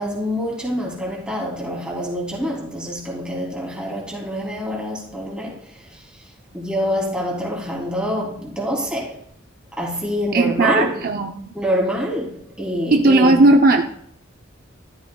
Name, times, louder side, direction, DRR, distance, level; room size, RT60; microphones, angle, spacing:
voice 1, 0.0-6.0 6.5-9.2 9.7-11.0 11.5-13.6, equal, 5° right, 3.2 m, -26 dB
voice 2, 10.3-11.4 12.9-13.9, right 2 dB, 50° right, 0.7 m, -16 dB
13.5 x 13.0 x 2.3 m
head